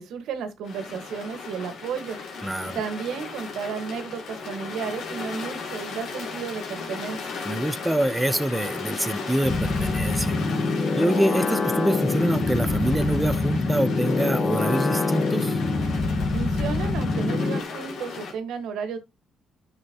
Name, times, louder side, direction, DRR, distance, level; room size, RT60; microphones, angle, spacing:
voice 1, 0.0-2.2 2.7-7.3 16.3-19.0, right 6 dB, 85° right, 1.7 m, -33 dB
sound 1, 0.6-18.3, left 4 dB, 70° left, 2.7 m, -36 dB
voice 2, 2.4-2.8 7.4-10.4 11.0-15.6, right 1 dB, 10° right, 0.8 m, -25 dB
sound 2, 9.4-17.6, left 3 dB, 35° left, 1.4 m, -25 dB
9.6 x 6.4 x 3.0 m
cardioid pair, 90°, 0 cm